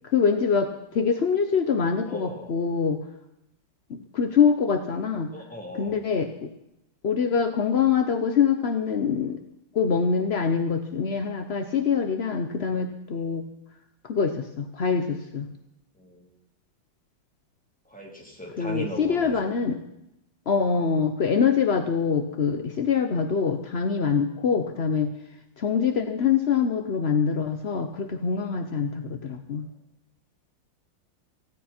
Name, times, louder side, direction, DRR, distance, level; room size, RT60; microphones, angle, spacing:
voice 1, 0.0-3.0 3.9-5.3 5.7-6.5 7.0-9.4 9.7-13.4 14.0-15.5 18.6-19.8 20.5-25.1 25.6-29.7, left 6 dB, 55° left, 7 dB, 0.7 m, -24 dB
voice 2, 2.1-2.6 5.3-6.0 13.1-13.3 16.0-16.4 17.9-19.5 28.3-28.4, equal, 5° left, -1 dB, 3.1 m, -39 dB
19.0 x 16.0 x 4.4 m, 0.82 s
omnidirectional pair, 2.3 m